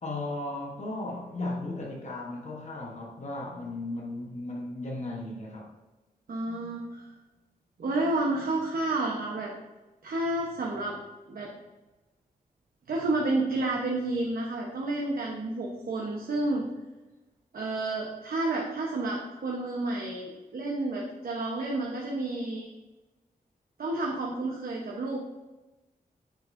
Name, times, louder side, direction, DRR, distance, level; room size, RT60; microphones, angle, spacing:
voice 1, 0.0-5.7, left 2 dB, 50° left, -1 dB, 1.1 m, -36 dB
voice 2, 6.3-7.1 7.8-9.5 10.0-11.0 11.3-11.5 12.9-16.6 17.5-22.7 23.8-25.2, right 2 dB, 75° right, -2 dB, 0.9 m, -30 dB
8.8 x 6.2 x 2.6 m, 1.1 s
wide cardioid pair, 175°, 15 cm